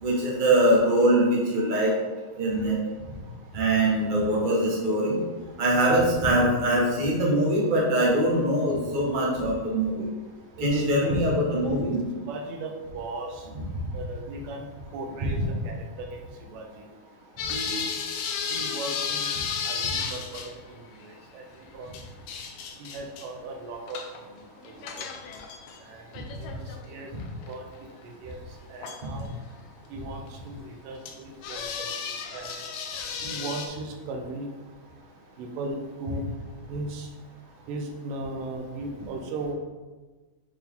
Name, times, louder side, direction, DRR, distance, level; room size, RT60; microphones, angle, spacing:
voice 1, 0.0-1.9 2.4-2.8 3.5-5.2 5.6-10.0 10.6-12.0 13.5-13.6 15.3-15.4, right 1 dB, 45° right, -4 dB, 0.6 m, -23 dB
voice 2, 10.6-11.1 12.3-13.5 13.9-14.7 14.9-16.9 17.5-17.8 18.5-19.4 19.6-22.0 22.8-25.1 25.8-26.1 26.4-27.1 27.4-29.3 29.9-32.6 33.2-34.5 35.4-36.2 36.7-37.1 37.7-39.5, right 2 dB, 80° right, 2 dB, 2.4 m, -38 dB
sound 1, 17.4-20.5 21.9-23.3 23.9-24.2 24.6-25.8 26.1-27.5 28.0-28.1 28.8-29.2 30.3-30.4 31.1-31.2 31.4-33.7, left 6 dB, 90° left, 2.4 m, -33 dB
8.0 x 4.5 x 3.8 m, 1.3 s
omnidirectional pair, 3.8 m